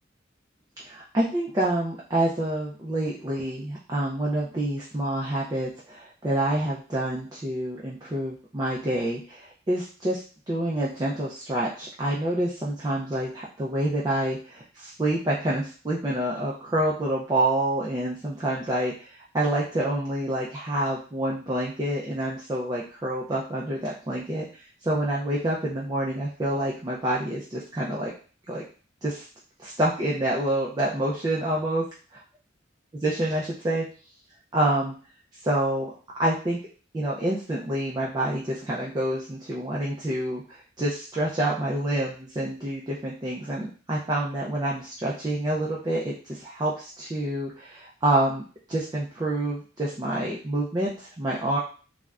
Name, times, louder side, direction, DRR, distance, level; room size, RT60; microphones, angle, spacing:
voice 1, 0.8-28.1 28.5-28.6 29.0-29.3 29.6-31.8 32.9-33.8 34.5-34.9 35.4-35.9 36.2-36.6 36.9-51.6, right 1 dB, 20° right, -4 dB, 0.4 m, -27 dB
2.4 x 2.1 x 3.3 m, 0.39 s
head